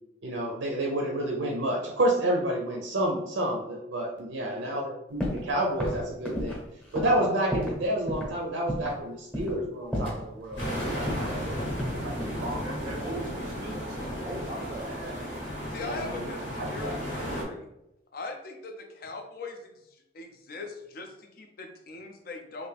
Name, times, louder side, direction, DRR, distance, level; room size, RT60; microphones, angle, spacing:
voice 1, 0.2-6.6 6.9-11.4 12.0-12.1 12.4-13.0 15.0-15.2 15.8-16.9, right 1 dB, 80° right, 0 dB, 0.5 m, -30 dB
voice 2, 4.4-4.8 11.0-15.2, right 1 dB, 20° right, -2 dB, 0.4 m, -41 dB
sound 1, 5.2-5.5 5.8-7.8 8.1-8.3 8.7-9.0 9.3-9.6 9.9-10.8 11.1-12.4 13.4-14.3 14.6-15.0, equal, 5° left, 0.8 m, -33 dB
sound 2, 10.6-17.4, equal, 85° left, 1.2 m, -34 dB
voice 3, 15.7-17.7 18.1-22.7, left 3 dB, 50° left, 4 dB, 0.5 m, -41 dB
3.3 x 2.5 x 3.3 m, 0.87 s
head